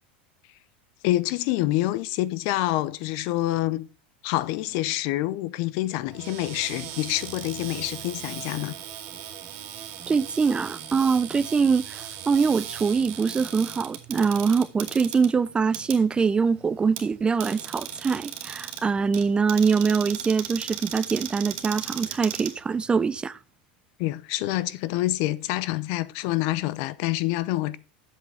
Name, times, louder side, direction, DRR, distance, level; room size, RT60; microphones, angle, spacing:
voice 1, 1.0-3.9 4.2-8.8 24.0-27.8, left 16 dB, 60° left, 0.6 m, -27 dB
Cupboard open or close, 6.1-23.2, right 10 dB, 55° right, 2.2 m, -38 dB
voice 2, 10.1-23.4, right 5 dB, 15° right, 0.4 m, -23 dB
8.1 x 7.6 x 4.2 m
hypercardioid pair, 110°, 5 cm